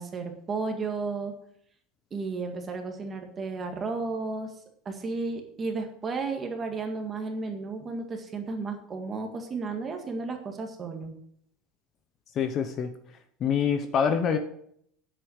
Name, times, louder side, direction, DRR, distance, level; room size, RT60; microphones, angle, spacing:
voice 1, 0.0-1.3 2.1-4.5 4.9-11.1, right 4 dB, 20° right, 4 dB, 1.8 m, -33 dB
voice 2, 12.3-12.9 13.4-14.4, left 7 dB, 30° left, 9 dB, 0.9 m, -25 dB
10.0 x 8.1 x 6.5 m, 0.66 s
cardioid pair, 170°, 0 cm